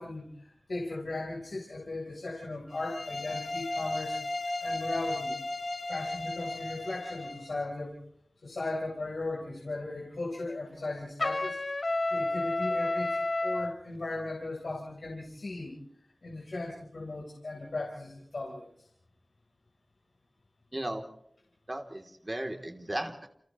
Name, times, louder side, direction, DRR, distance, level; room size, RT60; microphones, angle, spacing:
voice 1, 0.0-4.2 4.6-5.4 5.9-8.0 8.4-11.6 12.1-15.8 16.2-18.9, left 2 dB, 90° left, -3 dB, 4.1 m, -37 dB
sound 1, 2.7-7.5, left 2 dB, 75° left, 5.4 m, -35 dB
Trumpet, 11.2-13.7, left 2 dB, 50° left, 0.9 m, -30 dB
voice 2, 20.7-21.0 21.7-23.3, right 1 dB, 25° right, 3 dB, 3.1 m, -36 dB
29.5 x 29.5 x 3.2 m, 0.67 s
wide cardioid pair, 65°, 0 cm